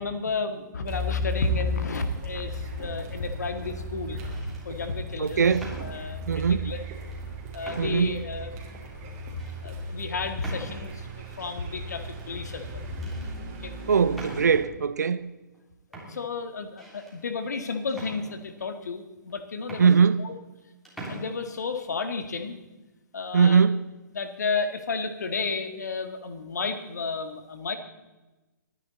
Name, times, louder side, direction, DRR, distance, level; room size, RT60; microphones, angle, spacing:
voice 1, 0.0-4.2 4.6-5.5 5.8-6.8 7.5-8.5 8.9-9.2 9.6-12.9 13.6-13.7 15.9-19.9 20.2-20.4 21.1-22.6 23.1-23.6 24.1-27.8, left 4 dB, 60° left, 1.8 m, -32 dB
Car, 0.8-14.6, left 2 dB, 25° right, 2.9 m, -36 dB
sound 1, 2.8-3.2 4.0-4.6 5.5-6.4 7.1-7.2 7.6-8.2 8.7-8.8 9.4-9.6 10.4-11.1 12.2-12.7 13.0-13.3 14.1-14.8 15.5-15.6 15.9-17.2 17.9-18.7 19.3-19.4 19.6-20.6 20.8-21.2, right 1 dB, ahead, 3.2 m, -43 dB
voice 2, 5.2-5.7 6.3-6.7 7.8-8.2 13.9-15.3 19.8-20.3 23.3-23.8, right 6 dB, 60° right, 0.7 m, -21 dB
23.5 x 10.0 x 4.1 m
figure-of-eight pair, 125°, 10 cm